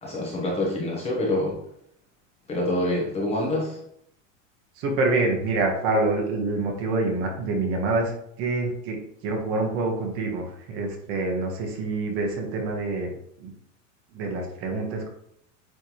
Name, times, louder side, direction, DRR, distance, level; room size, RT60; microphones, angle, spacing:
voice 1, 0.0-1.6 2.5-3.8, left 1 dB, 15° left, -3 dB, 1.0 m, -26 dB
voice 2, 4.8-13.1 13.4-13.5 14.1-15.1, right 3 dB, 35° right, 2 dB, 1.3 m, -26 dB
9.2 x 3.4 x 3.0 m, 0.71 s
supercardioid pair, 170°, 38 cm